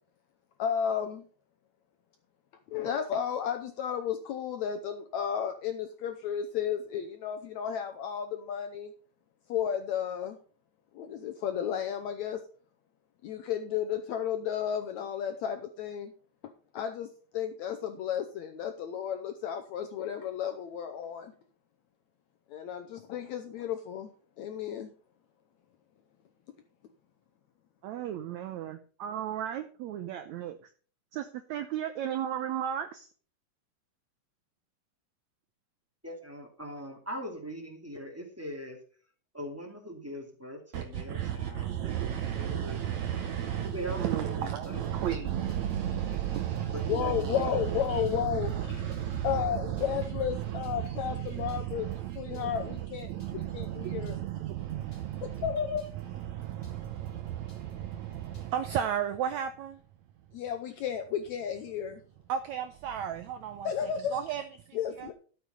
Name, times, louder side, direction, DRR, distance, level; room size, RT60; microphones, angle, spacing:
voice 1, 0.6-1.3 2.7-8.9 9.5-10.4 10.9-12.4 13.2-16.1 16.4-21.3 22.5-24.1 24.4-24.9 46.9-48.9 49.2-51.9 52.2-54.2 55.2-55.9 60.3-62.0 63.6-64.1 64.7-65.1, left 9 dB, 75° left, 1.7 m, -33 dB
voice 2, 27.8-30.6 31.1-33.1 40.7-55.5 56.0-59.8 62.3-65.1, right 10 dB, 90° right, 1.6 m, -34 dB
voice 3, 36.0-38.8 39.3-42.8 43.7-45.5 46.7-47.6, equal, 5° right, 1.7 m, -41 dB
sound 1, 41.3-59.0, left 1 dB, 20° left, 2.1 m, -55 dB
12.5 x 6.8 x 5.5 m
omnidirectional pair, 4.1 m